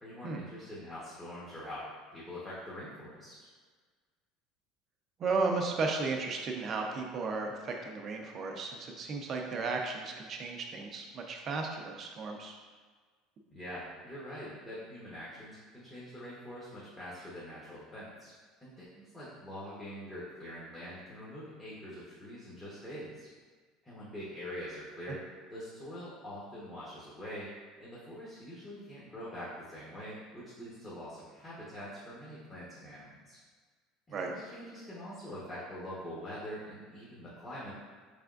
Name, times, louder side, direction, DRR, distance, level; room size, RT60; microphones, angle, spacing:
voice 1, 0.0-3.4 13.5-18.3 18.6-23.3 23.8-25.2 25.5-27.5 27.8-33.4 34.1-37.7, equal, 15° left, -9 dB, 1.0 m, -44 dB
voice 2, 5.2-12.6 34.1-34.3, right 4 dB, 35° right, 2 dB, 0.5 m, -34 dB
4.8 x 3.4 x 2.5 m, 1.5 s
cardioid pair, 145°, 0 cm